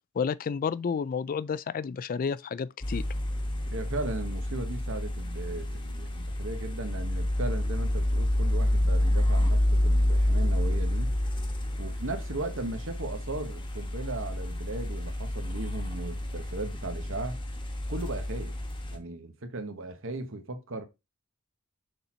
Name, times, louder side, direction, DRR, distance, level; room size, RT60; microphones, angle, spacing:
voice 1, 0.2-3.1, left 6 dB, 40° left, 0.3 m, -31 dB
sound 1, 2.8-19.0, left 1 dB, 25° left, 1.1 m, -29 dB
voice 2, 3.7-11.1 11.7-17.4 17.9-18.5 18.9-20.9, right 2 dB, 65° right, 1.1 m, -37 dB
6.7 x 4.2 x 4.3 m
head